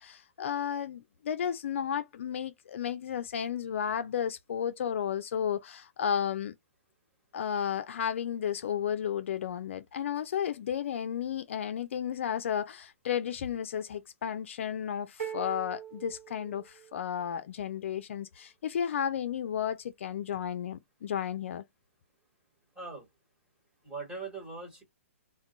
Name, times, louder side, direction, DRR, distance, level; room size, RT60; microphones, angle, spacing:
voice 1, 0.0-6.5 7.3-21.6, left 8 dB, 60° left, 0.4 m, -33 dB
sound 1, 15.2-17.2, right 9 dB, 75° right, 1.0 m, -41 dB
voice 2, 22.7-23.1 23.8-24.8, right 4 dB, 10° right, 1.1 m, -40 dB
2.2 x 2.2 x 3.8 m
hypercardioid pair, 150°, 8 cm